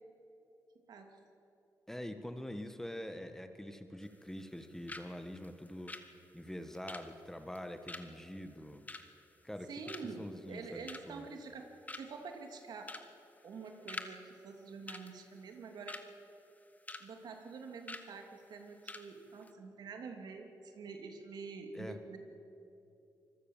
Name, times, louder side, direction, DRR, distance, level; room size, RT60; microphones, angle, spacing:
voice 1, 0.9-1.2 9.7-12.9 13.4-16.0 17.0-22.2, right 4 dB, 80° right, 4 dB, 2.9 m, -47 dB
voice 2, 1.9-6.0 6.3-8.8 9.4-9.7 10.0-11.2 21.7-22.0, left 1 dB, 5° left, 8 dB, 1.6 m, -45 dB
sound 1, 4.0-4.6 4.9-5.1 5.4-9.6 9.9-10.3 10.6-11.2 11.6-11.7 11.9-12.3 12.8-13.1 13.4-14.1 14.4-14.5 14.9-16.1 16.5-17.1 17.3-17.5 17.9-18.1 18.5-18.6 18.9-19.1 19.3-19.5, left 2 dB, 20° left, 1.6 m, -46 dB
25.0 x 21.0 x 7.4 m, 2.8 s
cardioid pair, 85°, 7 cm